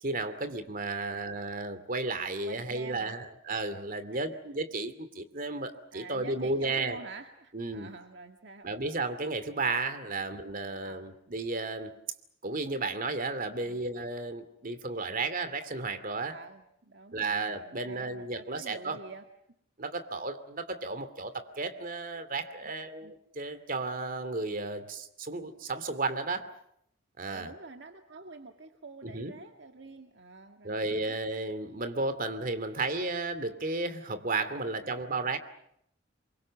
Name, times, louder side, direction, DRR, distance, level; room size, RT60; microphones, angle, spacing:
voice 1, 0.0-7.0 7.5-7.9 8.6-11.9 12.4-16.4 17.1-19.0 19.8-23.1 23.3-26.5 27.2-27.5 29.0-29.3 30.6-35.4, right 3 dB, 45° right, 10 dB, 2.5 m, -33 dB
voice 2, 0.8-1.3 2.4-3.2 4.0-4.2 5.9-8.7 10.0-10.2 10.8-11.0 13.4-13.8 16.3-19.3 22.6-22.7 23.0-23.2 27.3-31.2 34.7-35.3, right 3 dB, 65° right, 5 dB, 1.9 m, -47 dB
27.5 x 23.5 x 7.5 m, 0.74 s
head